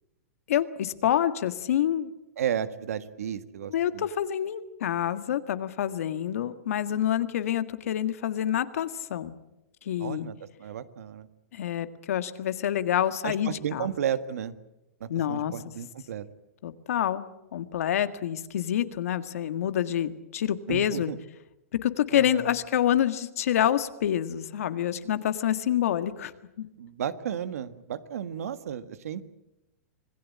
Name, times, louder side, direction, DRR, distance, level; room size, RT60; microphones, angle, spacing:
voice 1, 0.5-2.1 3.7-9.3 9.9-10.3 11.5-13.9 15.1-15.5 16.6-17.2 17.5-21.1 21.8-26.3 26.6-26.7, left 10 dB, 70° left, 10 dB, 1.8 m, -27 dB
voice 2, 2.4-4.1 10.0-11.3 13.2-14.5 15.0-16.3 20.7-21.2 22.1-22.5 26.8-29.2, right 9 dB, 75° right, 12 dB, 1.6 m, -33 dB
26.5 x 18.5 x 8.6 m, 0.94 s
hypercardioid pair, 140°, 8 cm